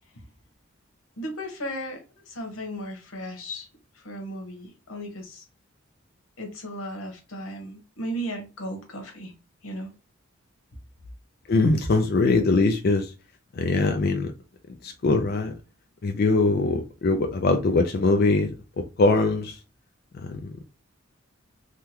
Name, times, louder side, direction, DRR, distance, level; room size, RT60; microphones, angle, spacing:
voice 1, 1.2-3.7 3.9-5.4 6.4-9.3 9.6-9.9 11.6-11.7, equal, 90° left, 1.0 m, -35 dB
voice 2, 11.5-13.1 13.5-14.3 14.8-15.5 16.0-18.5 19.0-19.6 20.1-20.5, left 3 dB, 45° left, 0.4 m, -22 dB
3.5 x 2.2 x 2.9 m
head